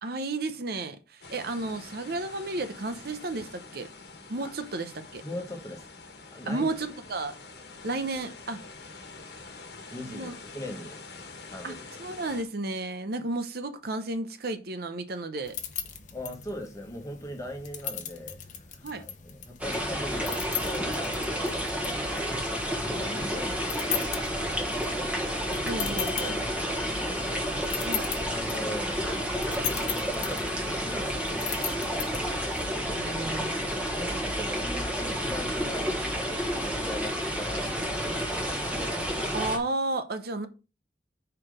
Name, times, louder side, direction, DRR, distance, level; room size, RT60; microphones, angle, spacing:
voice 1, 0.0-3.9 4.3-5.2 6.5-7.4 7.8-8.6 10.1-10.3 11.6-15.6 18.8-19.1 25.6-26.4 27.8-28.1 33.0-33.5 39.3-40.5, right 2 dB, 60° right, 0.8 m, -33 dB
sound 1, 1.2-12.4, left 3 dB, 60° left, 1.4 m, -46 dB
voice 2, 5.2-5.8 6.3-6.7 9.9-11.0 11.5-11.8 16.1-22.4 22.9-23.6 23.8-24.0 24.4-24.8 26.2-27.9 28.2-29.1 29.4-31.9 33.9-38.5, left 1 dB, 20° left, 1.3 m, -41 dB
sound 2, 15.4-32.7, left 9 dB, 45° left, 0.9 m, -39 dB
sound 3, 19.6-39.6, equal, 10° right, 1.4 m, -30 dB
5.9 x 4.5 x 4.9 m
head